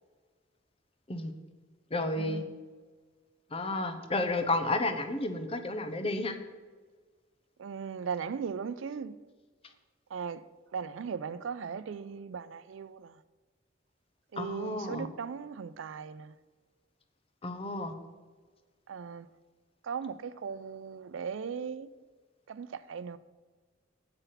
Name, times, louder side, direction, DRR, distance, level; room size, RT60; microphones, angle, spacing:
voice 1, 1.9-2.4 3.5-6.4 14.4-15.1 17.4-17.9, left 2 dB, 30° left, 0.8 m, -31 dB
voice 2, 7.6-9.2 10.1-10.4 10.7-13.1 14.3-16.3 18.9-19.3 19.9-21.9 22.5-23.2, right 6 dB, 80° right, 0.4 m, -38 dB
8.3 x 6.8 x 5.7 m
head